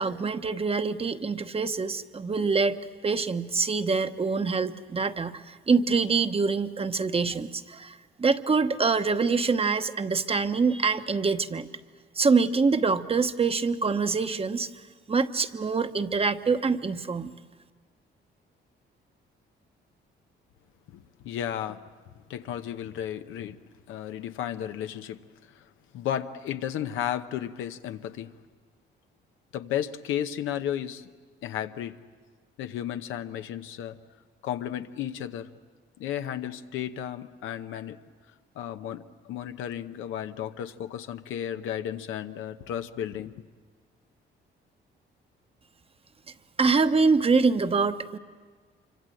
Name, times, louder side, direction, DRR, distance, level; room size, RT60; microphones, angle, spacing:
voice 1, 0.0-2.8 3.0-11.7 12.2-14.7 15.1-17.3 46.6-48.2, right 4 dB, 30° right, 9 dB, 1.0 m, -25 dB
voice 2, 20.9-21.8 22.3-23.6 23.9-25.2 25.5-25.7 25.9-28.3 29.5-31.1 31.4-32.0 32.6-34.0 34.4-35.5 36.0-38.0 38.5-43.3, left 10 dB, 90° left, 8 dB, 0.9 m, -33 dB
25.5 x 25.0 x 7.8 m, 1.5 s
cardioid pair, 90°, 20 cm